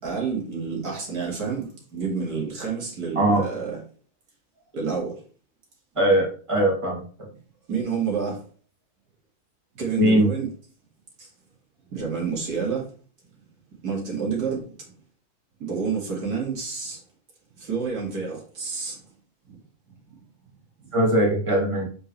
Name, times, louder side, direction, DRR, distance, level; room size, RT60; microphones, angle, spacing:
voice 1, 0.0-3.8 4.7-5.1 7.7-8.4 9.8-10.5 11.9-12.8 13.8-14.6 15.6-17.0 17.7-18.9, right 5 dB, 90° right, 2.8 m, -28 dB
voice 2, 6.0-7.0 10.0-10.3 20.9-21.9, right 1 dB, 20° right, 2.3 m, -20 dB
7.2 x 5.7 x 3.3 m
omnidirectional pair, 1.6 m